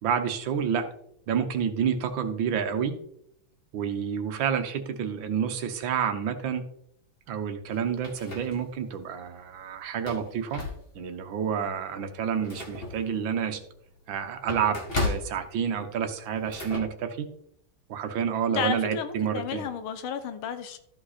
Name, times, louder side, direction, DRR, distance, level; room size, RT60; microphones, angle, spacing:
voice 1, 0.0-0.9 1.3-3.0 3.7-6.6 7.3-10.6 11.0-13.6 14.1-17.3 17.9-19.7, right 7 dB, 70° right, 7 dB, 1.7 m, -29 dB
sound 1, 7.7-9.0 9.4-9.5 9.9-11.2 11.6-11.8 12.1-16.8, left 2 dB, 30° left, 1.7 m, -35 dB
voice 2, 18.5-20.8, left 7 dB, 85° left, 10 dB, 1.6 m, -32 dB
13.0 x 5.2 x 4.2 m, 0.71 s
omnidirectional pair, 2.2 m